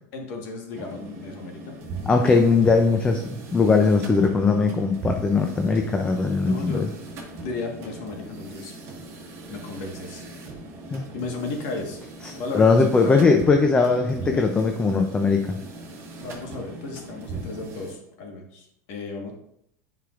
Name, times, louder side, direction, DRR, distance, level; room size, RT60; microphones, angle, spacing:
voice 1, 0.1-1.8 6.1-6.9 7.4-8.7 9.5-10.2 11.1-12.0 12.3-13.2 14.2-14.5 16.2-19.3, left 3 dB, 55° left, 2 dB, 1.5 m, -34 dB
sound 1, 0.7-18.0, right 2 dB, 30° right, 1.5 m, -39 dB
voice 2, 2.1-6.8 10.9-11.1 12.5-15.6, left 4 dB, 10° left, 4 dB, 0.4 m, -20 dB
9.0 x 4.9 x 2.5 m, 0.75 s
supercardioid pair, 150°, 9 cm